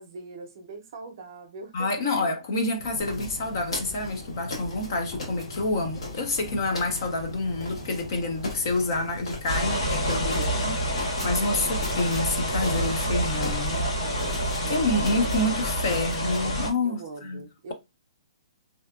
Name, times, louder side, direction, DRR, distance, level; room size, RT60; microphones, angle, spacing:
voice 1, 0.0-2.3 10.3-10.6 11.4-11.6 13.7-15.2 16.8-17.7, right 4 dB, 35° right, 0.6 m, -42 dB
voice 2, 1.7-13.8 14.7-17.4, left 2 dB, 35° left, 0.4 m, -28 dB
sound 1, 2.8-14.6, left 1 dB, 50° left, 0.8 m, -40 dB
sound 2, 3.0-16.5, left 2 dB, 70° left, 1.3 m, -41 dB
sound 3, 9.5-16.7, equal, 90° left, 1.6 m, -28 dB
2.6 x 2.2 x 2.3 m
hypercardioid pair, 180°, 3 cm